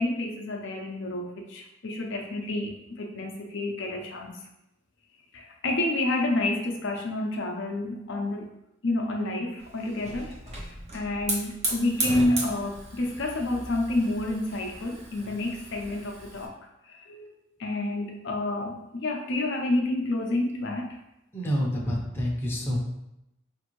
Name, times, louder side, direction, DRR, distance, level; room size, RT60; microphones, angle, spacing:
voice 1, 0.0-4.4 5.3-8.5 8.8-10.7 10.9-16.5 16.9-17.3 17.6-21.0, left 2 dB, 60° left, 1 dB, 0.6 m, -29 dB
Hiss / Fire, 9.6-16.4, right 1 dB, 35° right, 0.8 m, -36 dB
voice 2, 21.3-22.8, equal, 10° left, -3 dB, 0.7 m, -28 dB
5.1 x 2.6 x 3.0 m, 0.86 s
head